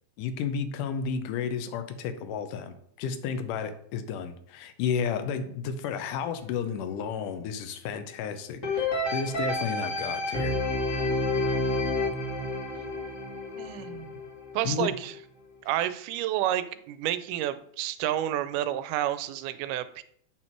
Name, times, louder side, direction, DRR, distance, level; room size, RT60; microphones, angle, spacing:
voice 1, 0.2-10.6 14.6-14.9, left 6 dB, 90° left, 9 dB, 2.3 m, -32 dB
sound 1, 8.6-14.6 15.1-15.2, left 2 dB, 40° left, 1.2 m, -30 dB
voice 2, 13.6-14.2 14.5-15.1 15.7-20.0, right 12 dB, 90° right, 13 dB, 2.1 m, -30 dB
8.1 x 4.3 x 4.5 m, 0.65 s
omnidirectional pair, 3.6 m